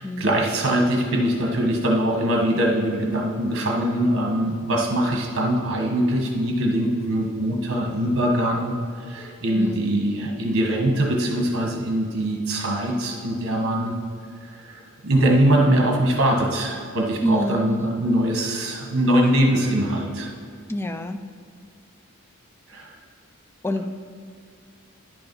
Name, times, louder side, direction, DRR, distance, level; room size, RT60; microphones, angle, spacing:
voice 1, 0.0-8.7 9.0-13.9 14.5-20.3 22.7-22.9, right 1 dB, 55° right, 1 dB, 1.4 m, -22 dB
voice 2, 9.6-10.0 17.2-17.9 20.7-21.2 23.6-23.9, equal, 10° left, 8 dB, 0.4 m, -27 dB
10.5 x 6.9 x 5.4 m, 2.2 s
head